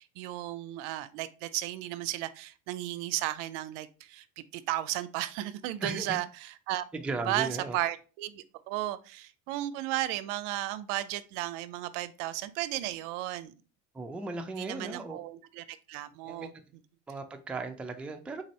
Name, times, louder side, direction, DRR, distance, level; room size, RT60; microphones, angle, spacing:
voice 1, 0.0-6.9 7.3-13.5 14.5-16.5, right 15 dB, 75° right, 14 dB, 0.5 m, -34 dB
voice 2, 5.8-6.2 6.9-7.8 13.9-15.2 16.2-16.5 17.1-18.4, right 3 dB, 5° right, 5 dB, 0.3 m, -36 dB
4.0 x 2.6 x 3.0 m, 0.35 s
supercardioid pair, 90°, 37 cm